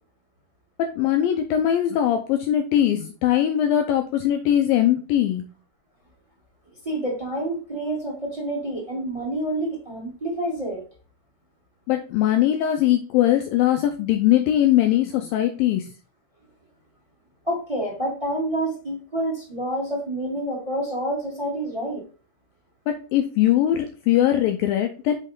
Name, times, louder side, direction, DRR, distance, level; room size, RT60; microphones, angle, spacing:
voice 1, 0.8-5.4 11.9-15.9 22.9-25.1, left 11 dB, 85° left, 5 dB, 2.0 m, -21 dB
voice 2, 6.8-10.8 17.4-22.0, right 1 dB, 10° right, -3 dB, 2.6 m, -28 dB
7.3 x 5.4 x 3.7 m, 0.36 s
omnidirectional pair, 4.9 m